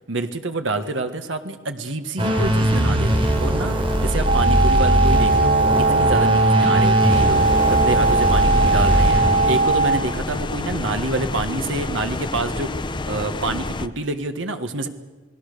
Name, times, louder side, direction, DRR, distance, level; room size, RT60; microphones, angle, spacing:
voice 1, 0.1-12.7 13.1-14.9, right 2 dB, 80° right, 7 dB, 1.6 m, -27 dB
sound 1, 2.2-9.9, equal, 30° right, 3.8 m, -20 dB
sound 2, 4.2-10.0, right 3 dB, 60° right, 1.4 m, -19 dB
sound 3, 7.1-13.9, left 2 dB, 25° left, 0.7 m, -28 dB
29.0 x 19.5 x 6.7 m, 1.2 s
head